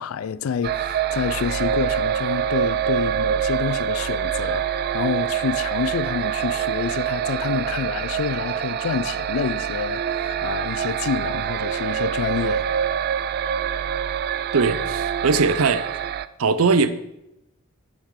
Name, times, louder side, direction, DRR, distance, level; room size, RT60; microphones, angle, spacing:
voice 1, 0.0-12.7, left 6 dB, 75° left, 0.4 m, -28 dB
sound 1, 0.6-16.3, right 8 dB, 50° right, 0.3 m, -25 dB
voice 2, 14.5-15.9 16.4-16.9, right 4 dB, 85° right, 0.6 m, -20 dB
7.1 x 5.9 x 4.7 m
head